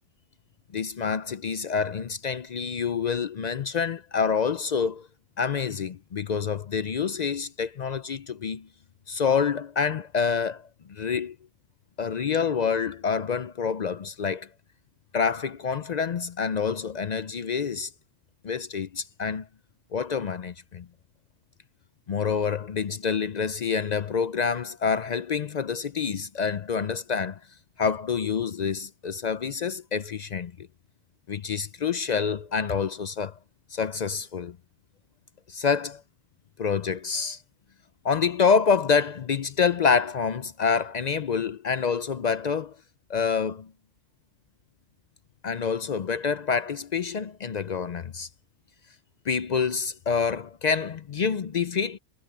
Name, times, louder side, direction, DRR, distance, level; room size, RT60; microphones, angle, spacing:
voice 1, 0.7-5.1 5.4-8.7 9.1-11.4 12.0-14.5 15.1-17.9 18.4-19.5 19.9-20.9 22.1-27.4 27.8-30.7 31.3-33.4 33.7-34.6 35.5-36.0 36.6-37.4 38.0-42.8 43.1-43.7 45.4-48.3 49.3-52.0, left 6 dB, 60° left, 0.4 m, -27 dB
omnidirectional pair, 1.4 m